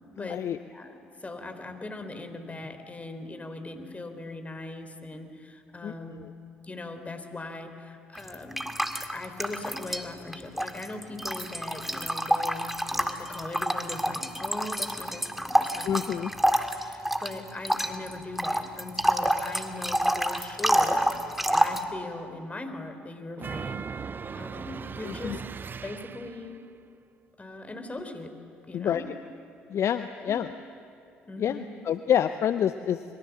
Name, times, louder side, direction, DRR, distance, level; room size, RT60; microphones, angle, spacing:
voice 1, 0.2-0.6 5.8-6.3 15.8-16.3 25.0-25.4 28.7-29.1 29.7-30.5 31.4-33.0, left 9 dB, 50° left, 12 dB, 0.7 m, -28 dB
voice 2, 0.7-6.3 6.6-8.7 9.0-16.1 16.8-23.8 24.3-25.4 25.8-26.6 27.4-28.3 28.7-29.0 30.2-30.5 31.2-31.7, left 2 dB, 25° left, 7 dB, 3.8 m, -40 dB
sound 1, 8.2-10.0 10.3-21.8, equal, 5° right, 2.1 m, -27 dB
sound 2, 23.4-26.6, right 6 dB, 35° right, 0.7 m, -38 dB
26.0 x 22.5 x 7.4 m, 2.5 s
figure-of-eight pair, 50°, 6 cm